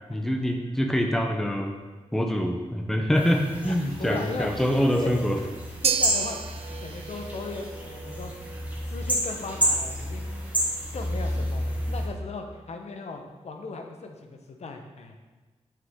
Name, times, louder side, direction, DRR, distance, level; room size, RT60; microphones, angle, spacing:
voice 1, 0.1-1.7 2.1-5.4, equal, 5° left, 2 dB, 0.7 m, -25 dB
sound 1, 3.2-12.1, equal, 15° right, 1.3 m, -30 dB
voice 2, 3.6-4.5 5.0-5.2 5.8-6.4 6.8-8.3 8.9-10.5 10.9-15.1, left 4 dB, 70° left, 4 dB, 0.8 m, -38 dB
sound 2, 5.8-14.2, right 7 dB, 60° right, 0.4 m, -36 dB
6.6 x 6.5 x 3.6 m, 1.3 s
wide cardioid pair, 105°, 12 cm